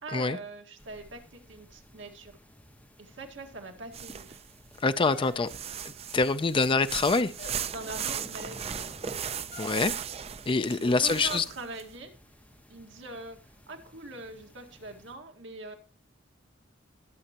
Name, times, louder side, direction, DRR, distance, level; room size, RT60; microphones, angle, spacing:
voice 1, 0.0-2.4 3.0-4.4 7.7-9.0 10.6-12.1 12.7-15.8, right 2 dB, 70° right, 4 dB, 1.8 m, -43 dB
sound 1, 0.8-15.2, equal, 10° left, 1.5 m, -54 dB
sound 2, 3.9-4.7 5.2-11.8, right 8 dB, 35° right, 0.5 m, -37 dB
voice 2, 4.8-5.5 5.8-7.3 9.6-10.0 10.5-11.4, left 3 dB, 25° left, 12 dB, 0.4 m, -25 dB
sound 3, 5.0-5.8 6.6-7.0 7.4-7.7 9.5-9.8, left 3 dB, 50° left, 3.2 m, -46 dB
20.5 x 7.6 x 2.9 m, 0.35 s
head